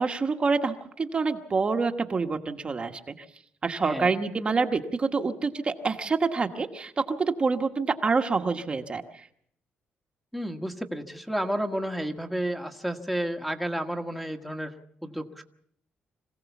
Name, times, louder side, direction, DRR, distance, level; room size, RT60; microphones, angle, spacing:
voice 1, 0.0-3.1 3.6-9.0, right 4 dB, 30° right, 5 dB, 1.2 m, -27 dB
voice 2, 3.8-4.1 10.3-14.7 15.0-15.4, right 1 dB, ahead, 5 dB, 1.4 m, -31 dB
26.0 x 16.5 x 7.1 m, 0.68 s
cardioid pair, 130°, 4 cm